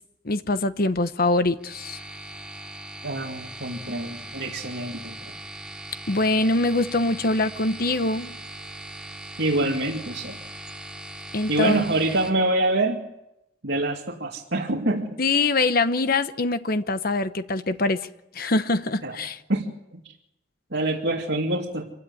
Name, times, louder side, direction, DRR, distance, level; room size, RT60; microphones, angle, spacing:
voice 1, 0.2-2.0 6.1-8.3 11.3-11.8 15.2-18.0 18.3-19.4, left 2 dB, 55° left, 1.1 m, -23 dB
sound 1, 1.6-12.3, right 1 dB, 5° right, 2.5 m, -40 dB
voice 2, 3.0-5.3 9.4-10.4 11.5-13.0 13.6-15.2 19.0-19.2 19.5-20.0 20.7-21.9, right 2 dB, 70° right, 2.4 m, -26 dB
26.0 x 16.5 x 9.8 m
head